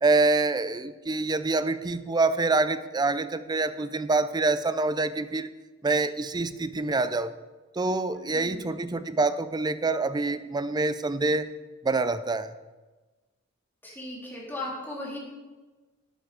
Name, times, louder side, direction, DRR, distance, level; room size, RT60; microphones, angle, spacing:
voice 1, 0.0-5.5 5.8-7.3 7.8-11.5 11.8-12.5, right 3 dB, 20° right, 13 dB, 0.5 m, -26 dB
voice 2, 8.1-8.7 13.8-15.2, left 1 dB, 10° left, -5 dB, 3.5 m, -37 dB
11.5 x 9.2 x 5.1 m, 1.2 s
head